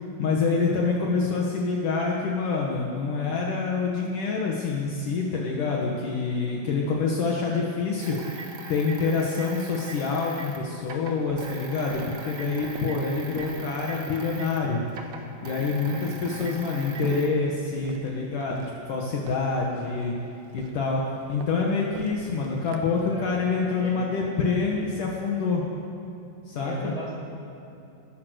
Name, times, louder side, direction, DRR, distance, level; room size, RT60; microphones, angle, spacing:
voice 1, 0.2-8.3 8.7-14.8 15.4-20.1 20.5-25.6 26.5-26.9, left 4 dB, 65° left, -2 dB, 3.1 m, -26 dB
sound 1, 8.0-14.6 14.9-17.3, right 4 dB, 40° right, 2.2 m, -41 dB
Walk footsteps, 10.8-23.6, right 7 dB, 80° right, 3.1 m, -46 dB
voice 2, 26.6-27.2, equal, 10° left, -4 dB, 5.7 m, -37 dB
25.5 x 20.0 x 6.5 m, 2.7 s
omnidirectional pair, 4.3 m